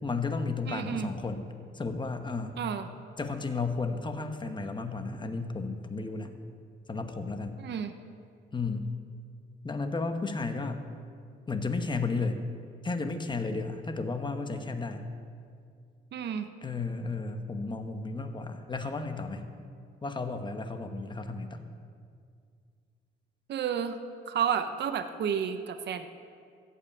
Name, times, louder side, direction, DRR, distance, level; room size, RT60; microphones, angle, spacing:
voice 1, 0.0-2.6 3.2-6.4 6.9-7.6 8.5-8.9 9.6-10.9 11.5-12.4 12.8-15.0 16.6-19.4 20.0-21.6, left 3 dB, 25° left, 7 dB, 1.1 m, -33 dB
voice 2, 0.7-1.1 2.6-2.9 7.6-7.9 16.1-16.5 23.5-24.0 24.3-26.1, right 8 dB, 60° right, 9 dB, 0.8 m, -31 dB
14.5 x 5.6 x 8.5 m, 2.2 s
cardioid pair, 90°, 20 cm